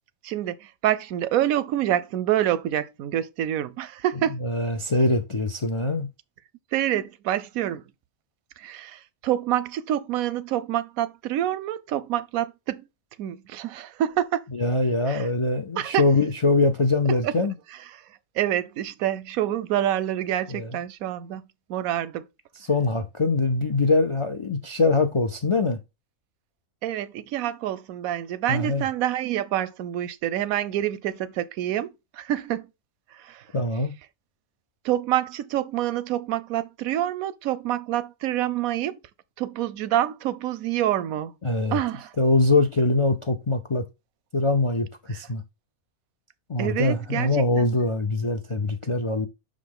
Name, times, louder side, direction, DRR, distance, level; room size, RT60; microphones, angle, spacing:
voice 1, 0.2-4.4 6.7-7.8 8.6-12.8 13.2-14.4 15.1-15.2 15.8-16.0 17.2-17.3 18.4-21.4 21.7-22.3 26.8-32.7 33.2-33.4 34.8-39.0 39.4-41.3 41.7-42.1 46.6-47.7, right 12 dB, 85° right, 1.0 m, -27 dB
voice 2, 4.3-6.1 14.5-17.6 20.5-20.8 22.5-25.8 28.5-28.9 33.5-33.9 41.4-41.8 42.2-43.9 44.3-45.4 46.5-49.3, left 3 dB, 50° left, 0.3 m, -23 dB
6.2 x 5.0 x 3.7 m
omnidirectional pair, 1.4 m